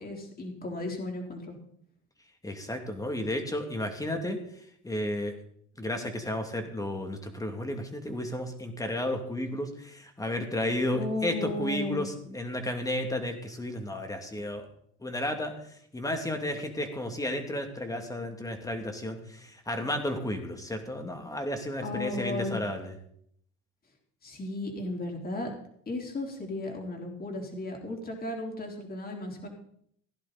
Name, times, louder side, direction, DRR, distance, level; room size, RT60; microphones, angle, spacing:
voice 1, 0.0-1.6 6.0-6.1 10.9-12.0 21.8-22.6 24.2-25.5 25.9-29.5, left 2 dB, 30° left, 1 dB, 3.8 m, -35 dB
voice 2, 2.4-4.4 4.8-5.3 5.8-14.6 15.0-15.5 15.9-22.9, left 1 dB, 10° left, 5 dB, 2.4 m, -32 dB
16.0 x 11.0 x 4.2 m, 0.67 s
supercardioid pair, 100°, 30 cm